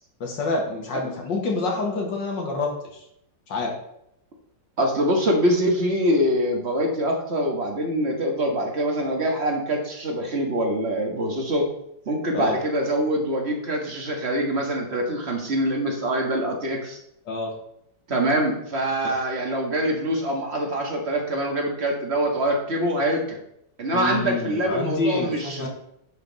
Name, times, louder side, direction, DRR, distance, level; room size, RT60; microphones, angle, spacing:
voice 1, 0.2-3.0 3.5-3.8 12.3-12.6 17.3-17.5 23.9-25.7, left 3 dB, 70° left, 1 dB, 2.3 m, -27 dB
voice 2, 4.8-11.7 12.0-17.0 18.1-23.4 23.8-25.7, right 1 dB, 35° right, 1 dB, 1.6 m, -24 dB
10.5 x 5.8 x 4.0 m, 0.77 s
omnidirectional pair, 2.1 m